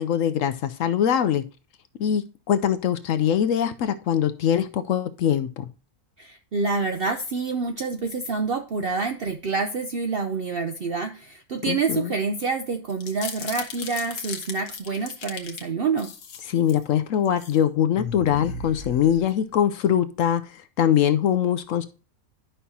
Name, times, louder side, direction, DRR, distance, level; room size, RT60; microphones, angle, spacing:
voice 1, 0.0-1.4 2.0-5.7 11.7-12.1 16.5-21.8, left 9 dB, 70° left, 0.8 m, -23 dB
voice 2, 6.2-16.1, right 4 dB, 60° right, 0.6 m, -27 dB
sound 1, 12.9-15.6 16.0-16.8 17.3-17.6 17.9-19.6, left 5 dB, 85° left, 1.5 m, -36 dB
11.0 x 5.6 x 2.7 m
omnidirectional pair, 1.6 m